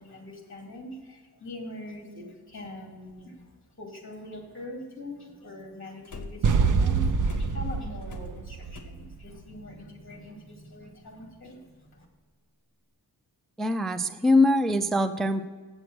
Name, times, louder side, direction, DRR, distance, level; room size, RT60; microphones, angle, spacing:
voice 1, 0.0-12.1, left 1 dB, 30° left, 0 dB, 2.4 m, -43 dB
sound 1, 3.1-3.2 6.1-6.6 7.2-8.8, left 3 dB, 45° left, 1.1 m, -42 dB
sound 2, 6.4-9.4, right 5 dB, 50° right, 0.6 m, -25 dB
voice 2, 13.6-15.5, left 2 dB, ahead, 9 dB, 0.3 m, -23 dB
7.8 x 7.8 x 6.1 m, 1.4 s
wide cardioid pair, 150°, 40 cm